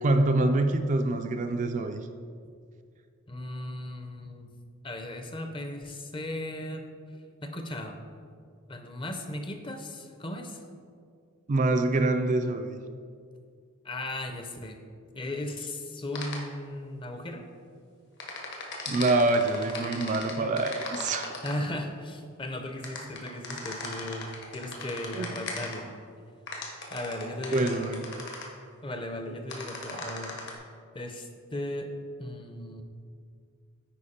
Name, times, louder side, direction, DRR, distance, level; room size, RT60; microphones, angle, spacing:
voice 1, 0.0-2.0 11.5-12.8 18.9-21.3 25.2-25.3 27.5-28.0, right 2 dB, 35° right, 6 dB, 0.4 m, -25 dB
voice 2, 3.3-4.5 4.8-6.8 7.4-8.0 8.7-10.6 13.8-14.8 15.1-17.4 21.4-25.9 26.9-28.0 28.8-30.3 30.9-31.9 32.2-32.8, left 1 dB, 25° left, 5 dB, 0.6 m, -36 dB
sound 1, 16.1-16.4 18.2-21.6 22.8-25.8 26.5-28.5 29.5-30.5, left 3 dB, 55° left, 1.3 m, -37 dB
10.0 x 4.5 x 4.3 m, 2.2 s
head